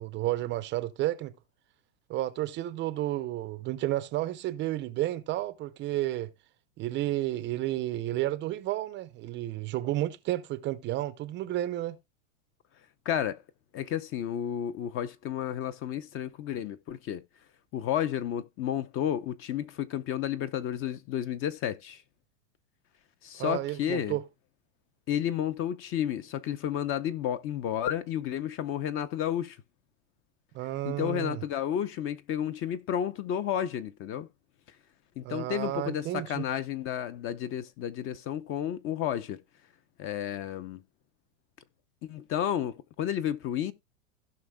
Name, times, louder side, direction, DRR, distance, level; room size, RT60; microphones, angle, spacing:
voice 1, 0.0-1.3 2.1-6.3 6.8-12.0 23.4-24.2 30.5-31.4 35.2-36.4, right 15 dB, 30° right, 0.5 m, -31 dB
voice 2, 13.1-13.4 13.7-17.2 17.7-22.0 23.2-24.2 25.1-29.6 30.8-34.3 35.2-39.4 40.0-40.8 42.0-43.7, left 10 dB, 30° left, 0.7 m, -31 dB
16.5 x 5.5 x 2.2 m
hypercardioid pair, 125°, 41 cm